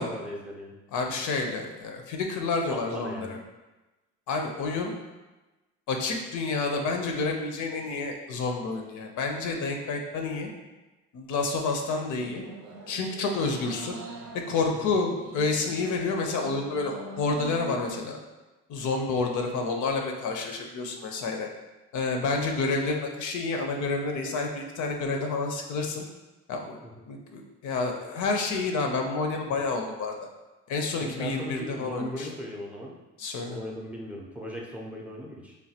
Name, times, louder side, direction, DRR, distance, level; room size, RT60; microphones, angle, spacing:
voice 1, 0.0-0.8 2.7-3.4 26.8-27.1 31.0-33.0 33.4-35.6, left 1 dB, 5° right, -2 dB, 0.4 m, -38 dB
voice 2, 0.9-3.4 4.3-4.9 5.9-10.5 11.1-12.4 12.9-14.0 14.5-18.2 18.7-21.5 21.9-26.0 26.5-26.8 27.1-30.1 30.7-32.3 33.2-33.6, left 3 dB, 75° left, 3 dB, 0.5 m, -29 dB
sound 1, 12.2-17.9, right 4 dB, 85° right, 0.5 m, -43 dB
3.2 x 2.2 x 2.7 m, 1.1 s
cardioid pair, 90°, 30 cm